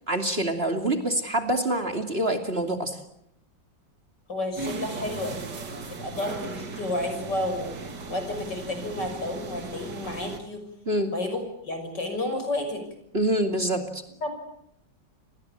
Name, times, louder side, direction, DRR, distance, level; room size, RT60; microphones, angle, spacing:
voice 1, 0.1-3.0 10.9-11.1 13.1-14.0, right 1 dB, 30° right, 6 dB, 2.8 m, -26 dB
voice 2, 4.3-5.4 5.9-7.8 8.1-10.6 11.1-12.8 14.2-14.3, left 1 dB, 65° left, 6 dB, 6.9 m, -31 dB
sound 1, 4.6-10.4, right 3 dB, 65° right, 2.9 m, -37 dB
29.0 x 20.0 x 8.6 m, 0.77 s
omnidirectional pair, 2.0 m